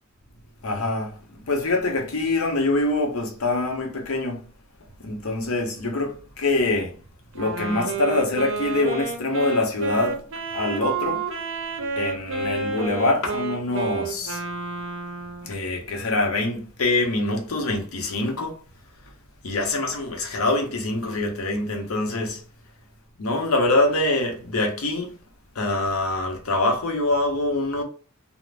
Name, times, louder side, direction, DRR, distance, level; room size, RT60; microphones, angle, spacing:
voice 1, 0.6-4.4 5.0-7.0 7.3-10.2 10.5-11.3 12.0-14.4 15.4-18.6 19.4-22.4 23.2-25.2 25.5-27.8, left 2 dB, 85° left, 0.7 m, -24 dB
Wind instrument woodwind instrument, 7.3-15.6, right 4 dB, 65° right, 0.5 m, -30 dB
2.4 x 2.0 x 3.2 m
head